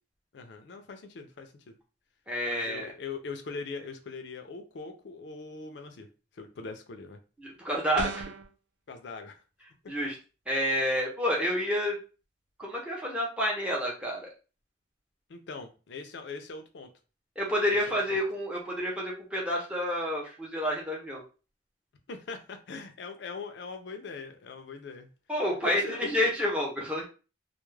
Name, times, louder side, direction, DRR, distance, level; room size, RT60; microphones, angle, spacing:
voice 1, 0.3-1.8 2.5-6.1 6.3-7.2 8.9-9.4 10.0-10.1 15.3-16.9 17.7-18.2 22.1-25.1 25.6-26.1, left 4 dB, 70° left, 6 dB, 0.4 m, -41 dB
voice 2, 2.3-2.9 7.4-8.3 9.9-10.2 10.5-12.0 12.6-14.3 17.4-21.2 25.3-27.1, equal, 5° right, -3 dB, 0.5 m, -29 dB
sound 1, 8.0-8.5, right 4 dB, 65° right, 0.4 m, -35 dB
2.2 x 2.0 x 3.1 m, 0.34 s
head